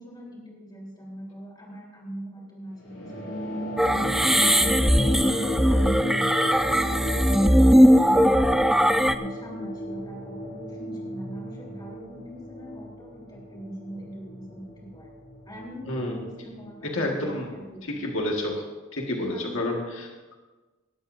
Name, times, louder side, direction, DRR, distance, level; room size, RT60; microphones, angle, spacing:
voice 1, 0.0-3.3 3.8-6.3 6.5-15.1 15.5-18.0 19.3-19.7, equal, 20° left, -3 dB, 3.7 m, -41 dB
sound 1, 2.8-17.7, left 1 dB, 55° left, 3.7 m, -34 dB
sound 2, 3.8-9.1, equal, ahead, 0.3 m, -19 dB
voice 2, 15.9-16.2 16.8-17.5 17.8-18.6 18.9-20.3, left 1 dB, 75° left, 0 dB, 1.8 m, -29 dB
18.5 x 12.5 x 2.7 m, 1.2 s
head